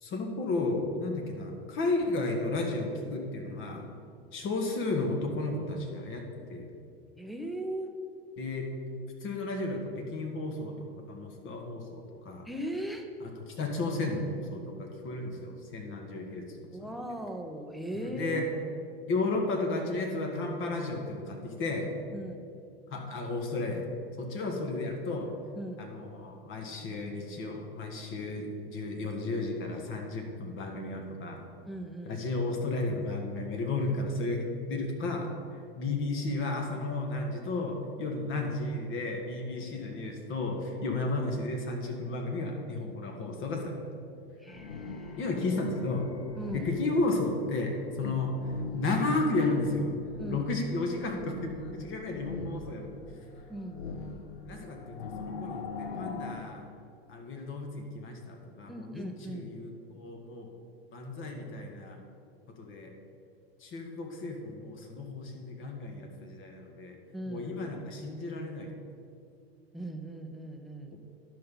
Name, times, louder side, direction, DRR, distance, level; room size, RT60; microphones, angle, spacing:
voice 1, 0.0-3.9 4.3-6.2 6.5-6.7 8.4-8.7 9.2-10.7 11.1-12.5 13.5-16.9 17.9-18.5 19.1-21.9 22.9-23.8 24.2-25.3 25.8-31.4 32.1-35.3 35.8-43.8 45.2-46.1 46.5-48.3 48.7-49.9 50.3-53.0 54.4-56.7 57.1-60.5 60.9-62.0 62.6-62.9 63.6-67.0 67.3-68.7, left 2 dB, 40° left, 2 dB, 1.8 m, -33 dB
voice 2, 7.1-7.9 12.4-13.1 16.7-18.4 22.1-22.4 25.5-25.8 31.7-32.2 44.4-45.3 46.4-46.7 48.0-48.2 50.2-50.5 53.5-53.8 58.7-59.5 67.1-67.5 69.7-70.9, right 1 dB, ahead, 4 dB, 0.9 m, -39 dB
sound 1, 44.5-56.3, left 4 dB, 70° left, 1.0 m, -43 dB
11.0 x 5.6 x 5.6 m, 2.5 s
hypercardioid pair, 90°, 31 cm